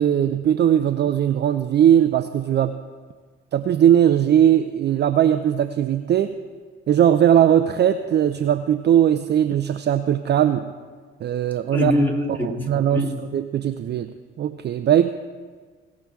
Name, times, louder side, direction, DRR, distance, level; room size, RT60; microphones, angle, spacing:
voice 1, 0.0-2.8 3.5-6.3 6.9-10.7 11.2-11.9 12.3-15.1, right 10 dB, 30° right, 9 dB, 0.5 m, -19 dB
voice 2, 11.7-13.2, left 1 dB, 5° left, -1 dB, 2.4 m, -23 dB
18.0 x 6.2 x 3.7 m, 1.5 s
figure-of-eight pair, 45°, 35 cm